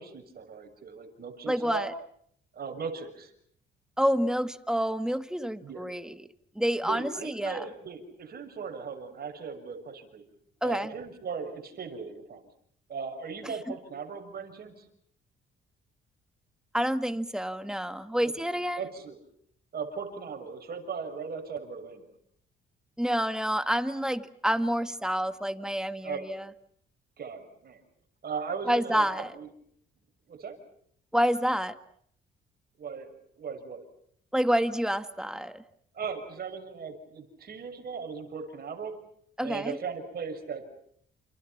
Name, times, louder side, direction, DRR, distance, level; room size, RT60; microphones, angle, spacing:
voice 1, 0.0-1.9 2.5-3.3 5.6-5.8 6.8-10.2 10.6-12.5 12.9-14.8 18.2-18.3 18.8-19.2 19.7-22.1 26.0-26.2 27.2-27.8 28.2-29.1 29.3-29.5 30.3-30.6 32.8-33.9 35.9-38.9 39.4-40.6, right 5 dB, 50° right, 4 dB, 6.6 m, -38 dB
voice 2, 1.5-1.9 4.0-6.2 6.6-7.6 10.6-10.9 16.7-18.9 23.0-26.5 28.7-29.3 31.1-31.8 34.3-35.6 39.4-39.8, equal, 5° right, 10 dB, 1.7 m, -28 dB
29.0 x 28.5 x 5.9 m, 0.66 s
cardioid pair, 90°, 20 cm